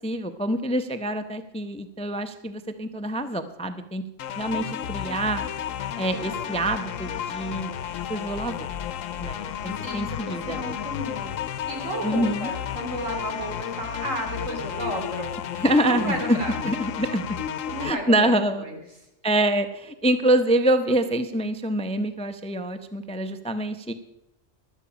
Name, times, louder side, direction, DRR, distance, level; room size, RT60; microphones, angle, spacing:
voice 1, 0.0-4.0 4.4-5.4 6.0-7.7 8.1-8.7 9.2-10.8 12.0-12.5 15.6-16.4 16.6-17.4 17.8-18.6 19.2-23.9, right 1 dB, 10° left, 9 dB, 0.4 m, -25 dB
sound 1, 4.2-17.9, left 9 dB, 85° left, 1.0 m, -32 dB
voice 2, 9.7-16.6 17.7-18.3 18.6-18.8, right 1 dB, 85° right, 2 dB, 3.2 m, -33 dB
16.0 x 12.0 x 5.0 m, 0.86 s
omnidirectional pair, 1.3 m